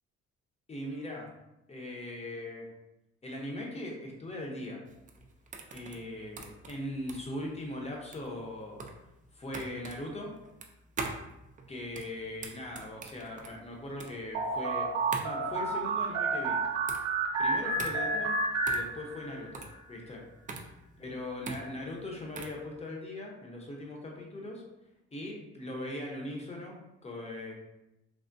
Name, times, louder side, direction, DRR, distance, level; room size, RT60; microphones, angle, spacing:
voice 1, 0.7-1.3 1.7-2.7 3.2-4.8 5.7-8.9 9.3-10.3 11.7-16.6 17.4-18.4 18.7-19.6 19.9-20.2 21.0-24.6 25.1-27.5, left 1 dB, 20° left, -1 dB, 0.8 m, -40 dB
sound 1, 4.9-22.6, right 4 dB, 25° right, 0.4 m, -43 dB
sound 2, 14.3-19.5, right 3 dB, 70° right, 0.6 m, -30 dB
3.4 x 2.1 x 2.5 m, 0.91 s
cardioid pair, 90°, 30 cm